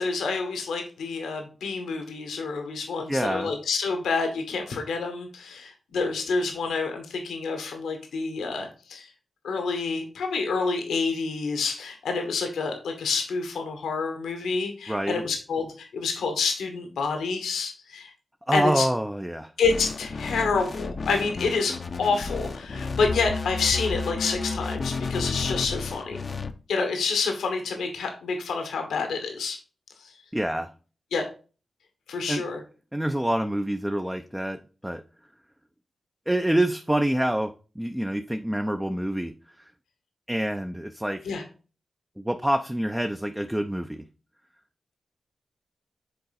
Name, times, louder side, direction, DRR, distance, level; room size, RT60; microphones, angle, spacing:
voice 1, 0.0-9.1 9.4-18.1 18.5-18.9 19.6-26.2 26.7-29.6 31.1-31.2 32.1-32.6 41.2-41.4, left 4 dB, 90° left, 4 dB, 1.2 m, -28 dB
voice 2, 3.1-3.5 14.9-15.2 18.5-19.5 30.3-30.7 32.3-32.4 32.9-35.0 36.3-39.3 40.3-41.3 42.2-44.0, right 1 dB, 10° right, 6 dB, 0.6 m, -26 dB
sound 1, 19.6-26.5, left 4 dB, 60° left, 0.7 m, -32 dB
6.8 x 3.8 x 4.0 m, 0.36 s
supercardioid pair, 40°, 0 cm